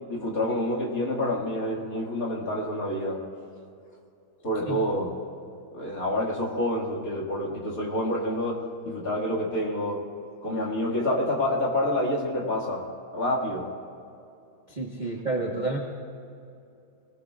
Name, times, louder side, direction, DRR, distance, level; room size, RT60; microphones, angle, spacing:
voice 1, 0.1-3.2 4.4-5.1 5.7-10.1 10.4-12.8 13.1-13.7, left 1 dB, 45° left, -2 dB, 2.5 m, -28 dB
voice 2, 14.7-15.8, right 2 dB, 25° right, -2 dB, 1.2 m, -30 dB
24.0 x 18.5 x 2.4 m, 2.6 s
omnidirectional pair, 2.2 m